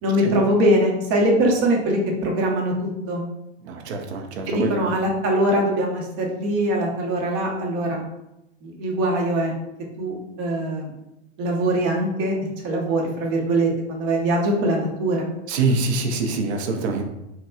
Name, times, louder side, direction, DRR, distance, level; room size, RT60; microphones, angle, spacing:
voice 1, 0.0-3.3 4.5-8.0 8.6-9.5 10.0-10.9 11.4-12.3 12.6-15.2, right 1 dB, 40° right, 0 dB, 0.9 m, -22 dB
voice 2, 3.6-4.8 15.5-17.0, right 3 dB, 75° right, 4 dB, 0.7 m, -24 dB
4.1 x 2.2 x 2.3 m, 0.88 s
hypercardioid pair, 115°, 33 cm